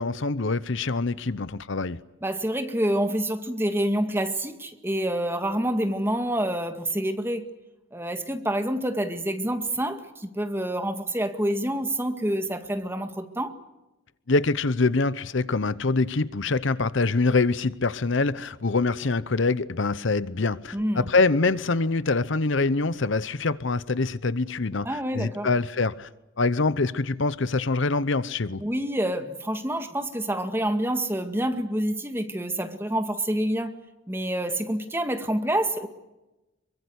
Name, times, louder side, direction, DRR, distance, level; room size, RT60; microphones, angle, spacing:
voice 1, 0.0-2.0 14.3-26.1 26.4-28.6, left 3 dB, 60° left, 0.8 m, -25 dB
voice 2, 2.2-7.5 7.9-13.6 20.7-21.1 24.8-25.5 28.6-33.7 34.1-35.9, right 1 dB, 10° right, 2.0 m, -27 dB
26.0 x 23.5 x 8.1 m
head